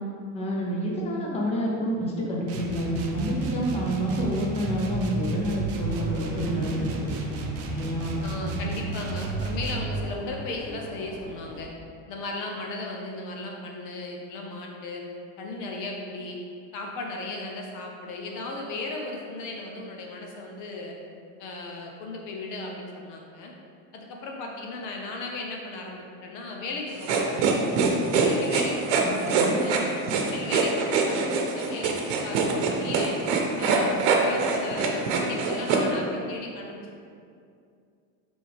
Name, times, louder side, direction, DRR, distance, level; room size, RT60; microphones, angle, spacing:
voice 1, 0.3-7.1 7.7-8.3 29.0-29.6, equal, 15° left, -3 dB, 0.8 m, -28 dB
sound 1, 2.4-10.0, right 4 dB, 35° right, 0.7 m, -32 dB
sound 2, 5.8-11.6, equal, 20° right, 1.4 m, -41 dB
voice 2, 8.2-11.7 12.1-15.0 15.4-16.4 16.7-20.9 21.4-23.5 23.9-27.4 28.1-29.8 30.2-33.2 33.6-37.0, left 2 dB, 50° left, 1 dB, 0.8 m, -36 dB
sound 3, 27.0-35.8, right 5 dB, 70° right, 1.0 m, -24 dB
8.9 x 3.5 x 3.4 m, 2.4 s
cardioid pair, 155°, 40 cm